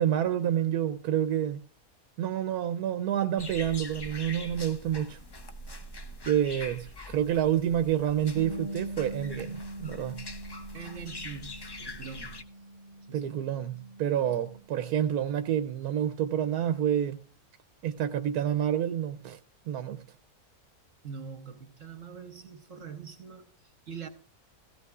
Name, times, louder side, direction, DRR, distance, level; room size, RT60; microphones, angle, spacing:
voice 1, 0.0-1.6 2.2-5.2 6.2-10.3 13.1-17.2 17.8-19.4 19.7-20.0, right 10 dB, 75° right, 1.2 m, -28 dB
sound 1, 3.4-12.4, left 1 dB, 40° left, 0.3 m, -43 dB
Bass guitar, 8.4-14.6, right 1 dB, 75° left, 6.8 m, -42 dB
voice 2, 10.7-12.4 13.1-13.5 21.0-24.1, right 6 dB, 60° right, 1.2 m, -43 dB
16.5 x 15.5 x 2.4 m
omnidirectional pair, 1.6 m